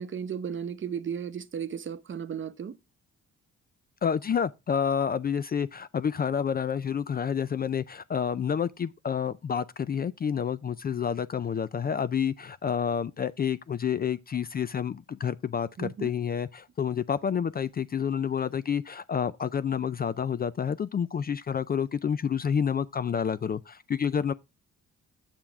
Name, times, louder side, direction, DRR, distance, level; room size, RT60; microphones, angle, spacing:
voice 1, 0.0-2.8 15.8-16.1, right 7 dB, 40° right, 0.9 m, -35 dB
voice 2, 4.0-24.3, left 7 dB, 30° left, 0.4 m, -29 dB
7.4 x 6.8 x 3.4 m
cardioid pair, 90°, 30 cm